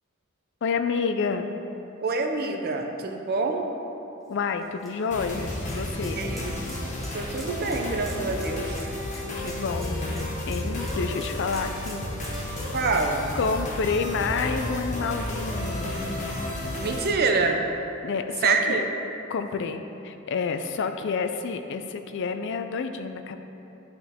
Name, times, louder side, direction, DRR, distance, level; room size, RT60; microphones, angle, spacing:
voice 1, 0.6-1.5 4.3-6.2 9.1-12.0 13.3-16.2 18.0-18.8 19.3-23.4, left 5 dB, 55° left, 8 dB, 0.4 m, -29 dB
voice 2, 2.0-3.7 6.0-6.6 7.1-8.9 12.7-13.3 16.8-17.6 18.4-18.8, right 4 dB, 45° right, 3 dB, 0.6 m, -26 dB
sound 1, 4.2-15.0 15.4-15.5 17.0-17.1, equal, ahead, 1.3 m, -47 dB
sound 2, 5.1-17.1, left 1 dB, 35° left, 1.0 m, -32 dB
10.5 x 4.4 x 3.5 m, 2.9 s
head